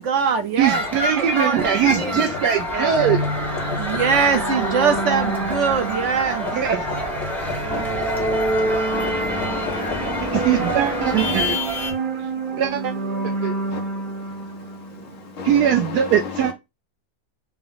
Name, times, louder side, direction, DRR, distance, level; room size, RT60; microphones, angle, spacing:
voice 1, 0.0-0.8 1.2-2.3 2.7-2.9 3.8-6.5, right 6 dB, 60° right, 0.8 m, -22 dB
sound 1, 0.6-11.9, equal, ahead, 1.0 m, -28 dB
voice 2, 0.6-3.2 6.5-6.8 10.3-11.6 12.6-12.9 13.4-13.5 15.4-16.5, right 9 dB, 85° right, 1.2 m, -21 dB
sound 2, 1.5-1.6 2.0-4.3 4.6-5.8 6.4-8.3 8.7-11.9, left 7 dB, 90° left, 1.7 m, -36 dB
voice 3, 1.8-2.2 7.7-7.8 8.9-11.6 13.7-13.8 15.4-16.5, left 5 dB, 55° left, 1.4 m, -31 dB
sound 3, 2.9-15.4, right 2 dB, 35° right, 1.0 m, -28 dB
5.7 x 2.1 x 3.8 m
omnidirectional pair, 1.7 m